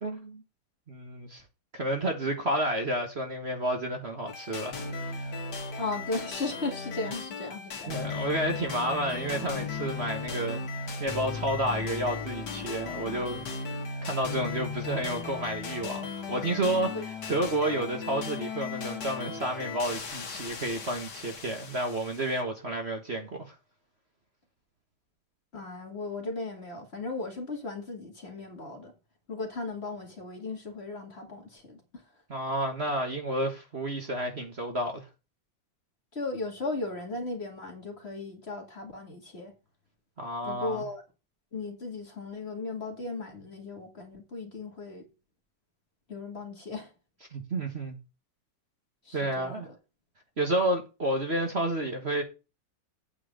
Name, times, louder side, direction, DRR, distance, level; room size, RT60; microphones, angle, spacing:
voice 1, 0.0-0.4 0.9-1.4 1.7-4.8 5.1-5.3 7.9-13.4 14.0-23.5 32.3-35.0 40.2-40.8 47.3-48.0 49.1-49.7 50.4-52.2, right 1 dB, 35° right, 1.6 m, -30 dB
sound 1, 4.3-22.4, left 5 dB, 65° left, 2.2 m, -37 dB
voice 2, 5.8-8.1 16.9-17.1 25.5-28.9 29.3-31.8 36.1-39.5 40.4-41.0 41.5-45.0 46.1-46.9 49.1-49.7, left 3 dB, 35° left, 2.3 m, -36 dB
8.9 x 4.7 x 7.5 m
omnidirectional pair, 2.0 m